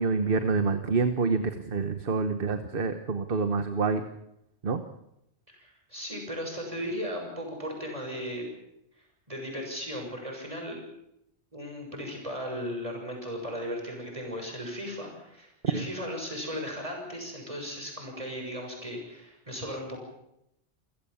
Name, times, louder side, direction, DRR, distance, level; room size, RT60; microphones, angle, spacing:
voice 1, 0.0-4.0 4.6-4.8 15.7-15.9, right 4 dB, 50° right, 9 dB, 1.3 m, -27 dB
voice 2, 5.5-8.4 9.3-10.8 11.5-20.0, equal, 30° right, 2 dB, 7.1 m, -36 dB
28.0 x 16.0 x 7.2 m, 0.82 s
omnidirectional pair, 1.2 m